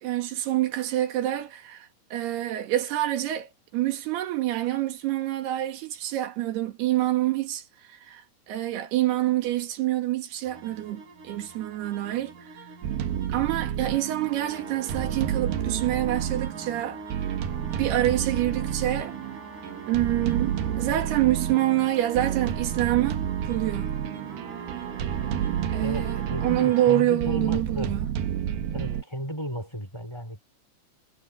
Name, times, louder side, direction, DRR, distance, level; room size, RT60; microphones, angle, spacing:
voice 1, 0.0-12.5 13.3-17.3 17.8-19.2 19.9-23.9 25.7-28.1, right 14 dB, 90° right, 3.9 m, -27 dB
sound 1, 10.4-27.0, right 4 dB, 55° right, 6.8 m, -42 dB
sound 2, 12.8-29.0, right 10 dB, 75° right, 3.1 m, -30 dB
voice 2, 25.8-28.0 28.7-30.4, equal, 5° left, 5.8 m, -34 dB
omnidirectional pair, 4.5 m